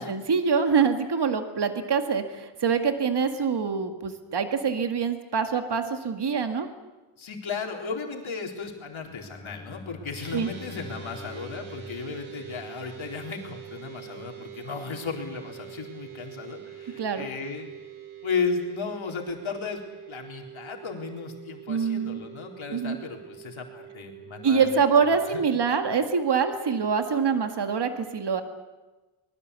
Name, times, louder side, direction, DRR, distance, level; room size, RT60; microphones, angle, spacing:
voice 1, 0.0-6.7 10.3-10.5 17.0-17.3 21.7-22.2 22.7-23.0 24.4-28.4, right 6 dB, 50° right, 7 dB, 2.1 m, -25 dB
voice 2, 7.2-17.7 18.2-25.4, left 5 dB, 65° left, 2 dB, 4.0 m, -35 dB
Bowed string instrument, 8.9-13.5, left 3 dB, 10° left, 4.9 m, -46 dB
sound 1, 10.2-27.5, right 9 dB, 70° right, 3.7 m, -45 dB
24.0 x 21.0 x 8.3 m, 1.2 s
wide cardioid pair, 170°, 50 cm